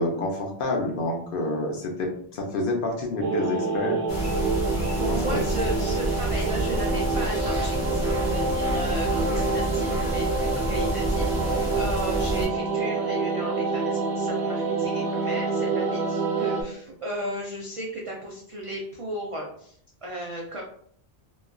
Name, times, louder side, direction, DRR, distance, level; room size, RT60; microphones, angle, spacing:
voice 1, 0.0-4.0 5.1-5.4, left 2 dB, 60° left, 1 dB, 0.7 m, -28 dB
sound 1, 3.2-16.6, right 4 dB, 85° right, 0.9 m, -27 dB
sound 2, 4.1-12.5, equal, 40° left, 1.0 m, -29 dB
voice 2, 4.7-19.8 20.0-20.6, right 1 dB, 60° right, -2 dB, 0.3 m, -35 dB
3.0 x 2.3 x 2.2 m, 0.63 s
omnidirectional pair, 1.1 m